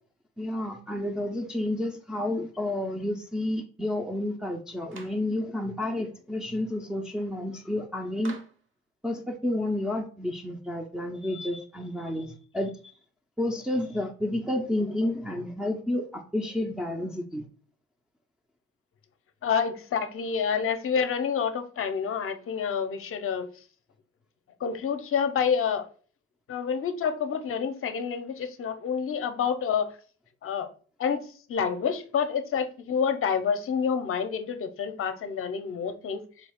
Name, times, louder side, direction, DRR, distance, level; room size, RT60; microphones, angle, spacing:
voice 1, 0.4-8.4 9.0-12.9 13.4-17.4, left 1 dB, ahead, 0 dB, 0.4 m, -30 dB
Clapping, 4.9-5.3 8.2-8.7, right 4 dB, 40° right, 0.8 m, -46 dB
voice 2, 19.4-23.5 24.6-25.9 26.5-29.9 30.4-30.7 31.0-36.2, left 6 dB, 45° left, 9 dB, 0.6 m, -28 dB
4.0 x 2.3 x 3.5 m, 0.41 s
cardioid pair, 90°, 30 cm